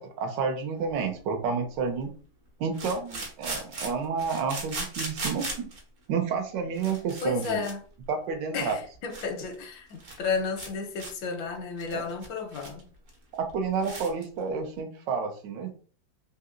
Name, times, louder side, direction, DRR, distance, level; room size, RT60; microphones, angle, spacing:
voice 1, 0.0-2.1 2.6-5.7 6.1-7.6 8.1-8.8 11.9-12.0 13.3-15.7, right 5 dB, 80° right, 1.3 m, -30 dB
sound 1, 0.9-1.0 2.7-5.8 6.5-6.6 6.8-7.7 8.0-8.2 8.7-8.8 9.1-9.3 9.5-9.6 9.9-10.2 10.6-10.7 11.0-11.1 11.5-12.8 13.1-13.2 13.5-13.6 13.8-14.2, right 2 dB, 50° right, 1.0 m, -37 dB
voice 2, 7.2-7.8 8.5-12.9, left 4 dB, 85° left, 1.5 m, -32 dB
3.5 x 2.8 x 2.4 m
omnidirectional pair, 2.0 m